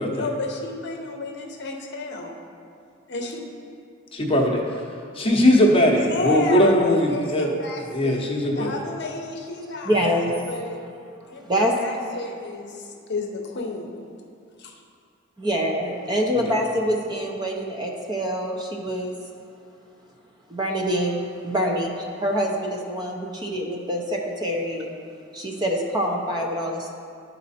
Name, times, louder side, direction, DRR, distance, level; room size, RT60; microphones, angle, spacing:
voice 1, 0.1-2.3 3.1-3.4 5.9-8.3 8.5-10.1 10.5-10.8 11.3-13.9 14.6-14.8, left 3 dB, 55° left, 1 dB, 0.7 m, -31 dB
voice 2, 4.1-4.6 5.2-7.5 7.9-8.7, left 1 dB, 30° left, 0 dB, 0.8 m, -19 dB
voice 3, 9.8-10.5 11.0-11.7 15.4-19.2 20.5-24.9 25.3-26.9, equal, 20° right, 0 dB, 0.7 m, -25 dB
10.5 x 4.1 x 4.2 m, 2.3 s
head